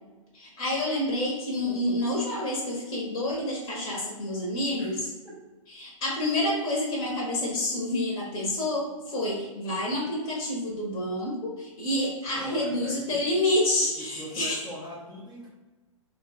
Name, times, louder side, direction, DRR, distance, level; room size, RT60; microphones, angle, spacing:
voice 1, 0.3-5.0 5.8-14.6, left 1 dB, 25° left, -4 dB, 1.1 m, -28 dB
voice 2, 12.4-13.2 13.8-15.5, equal, 5° left, -10 dB, 0.8 m, -40 dB
3.2 x 2.4 x 4.2 m, 1.2 s
figure-of-eight pair, 110°, 17 cm